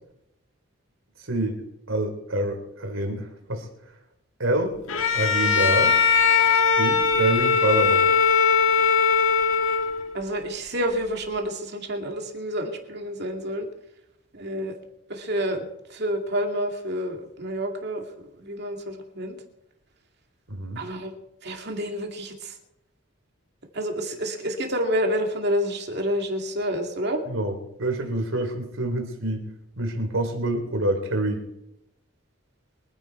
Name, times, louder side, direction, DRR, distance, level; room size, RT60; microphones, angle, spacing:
voice 1, 1.3-1.6 1.9-3.7 4.4-4.8 5.1-5.9 6.8-8.1 20.5-20.8 27.2-29.4 29.8-31.4, right 1 dB, 70° right, 6 dB, 3.3 m, -26 dB
Bowed string instrument, 4.9-10.2, left 6 dB, 75° left, 1.6 m, -20 dB
voice 2, 10.1-13.7 14.3-14.7 15.1-18.0 18.4-19.4 20.8-21.1 21.4-22.5 23.7-27.2, equal, 50° right, 3 dB, 2.5 m, -28 dB
24.0 x 10.0 x 4.5 m, 0.85 s
head